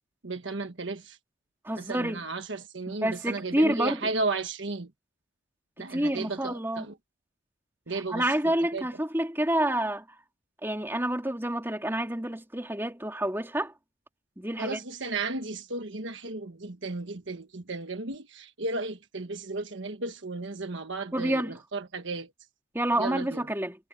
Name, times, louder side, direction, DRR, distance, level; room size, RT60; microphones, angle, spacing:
voice 1, 0.2-1.2 1.8-4.9 5.8-7.0 7.9-8.3 8.7-8.9 14.6-22.3 22.9-23.5, right 3 dB, 65° right, 1.4 m, -34 dB
voice 2, 1.6-2.2 2.9-4.0 5.9-6.9 8.1-10.0 10.6-13.7 14.4-14.8 21.1-21.5 22.7-23.8, right 1 dB, 10° right, 2.9 m, -28 dB
head